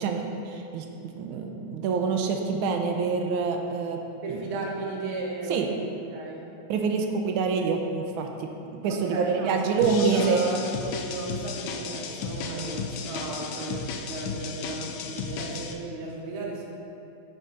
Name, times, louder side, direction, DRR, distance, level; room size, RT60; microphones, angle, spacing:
voice 1, 0.0-4.0 4.3-4.4 5.5-5.7 6.7-8.5 8.8-10.6, right 5 dB, 85° right, 3 dB, 1.4 m, -26 dB
voice 2, 4.2-6.5 8.9-16.7, right 3 dB, 45° right, -2 dB, 0.9 m, -35 dB
sound 1, 9.8-15.7, left 5 dB, 80° left, 1.3 m, -34 dB
7.6 x 3.6 x 5.2 m, 2.7 s
omnidirectional pair, 2.2 m